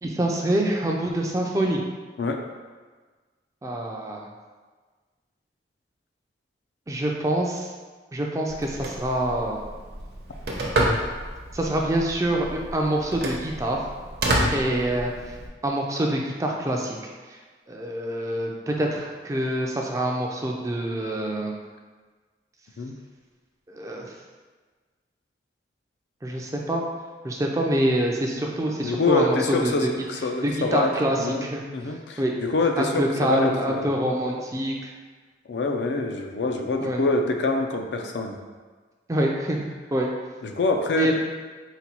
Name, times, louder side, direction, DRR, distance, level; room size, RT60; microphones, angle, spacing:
voice 1, 0.0-1.8 3.6-4.3 6.9-7.7 8.1-9.6 11.5-13.8 14.5-15.3 15.6-17.0 17.3-17.4 17.7-21.6 23.7-24.1 26.2-26.8 27.2-29.4 29.6-29.7 30.4-32.3 32.8-34.9 36.8-37.0 39.1-40.1 41.0-41.2, right 1 dB, 20° right, 0 dB, 0.3 m, -26 dB
Telephone, 8.5-15.5, right 1 dB, 60° right, 0.6 m, -29 dB
voice 2, 28.8-31.4 31.7-34.0 34.4-34.5 35.5-38.4 40.4-41.2, left 3 dB, 75° left, 4 dB, 0.4 m, -26 dB
4.0 x 2.2 x 4.2 m, 1.4 s
head